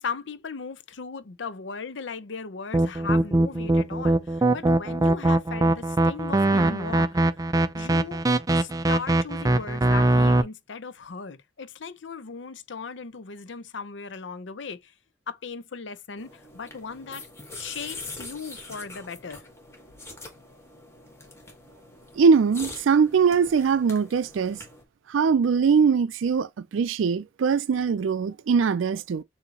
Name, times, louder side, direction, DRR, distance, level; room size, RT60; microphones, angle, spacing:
voice 1, 0.0-7.1 7.7-8.3 8.6-14.9 15.3-17.3 17.6-19.4, left 5 dB, 70° left, 0.6 m, -37 dB
sound 1, 2.7-10.4, right 2 dB, 20° right, 0.4 m, -21 dB
sound 2, 16.2-24.8, left 2 dB, 15° left, 1.3 m, -43 dB
voice 2, 22.2-24.6 25.1-29.2, right 5 dB, 85° right, 0.4 m, -21 dB
6.8 x 2.7 x 2.8 m
head